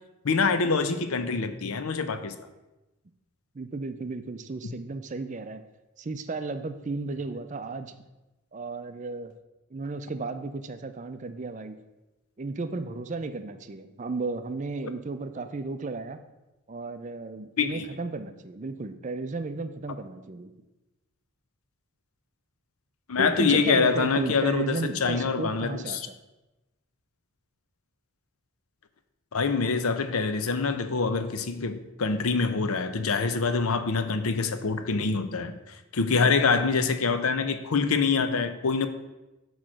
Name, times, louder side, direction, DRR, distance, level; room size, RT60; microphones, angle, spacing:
voice 1, 0.2-2.3 17.6-17.8 23.1-26.1 29.3-35.6 35.9-38.9, left 4 dB, 75° left, 9 dB, 0.6 m, -25 dB
voice 2, 3.5-5.6 6.0-7.9 8.5-9.3 9.7-11.8 12.4-16.2 16.7-20.5 23.2-26.2, right 3 dB, 35° right, 9 dB, 0.4 m, -34 dB
8.6 x 3.1 x 6.2 m, 1.0 s
head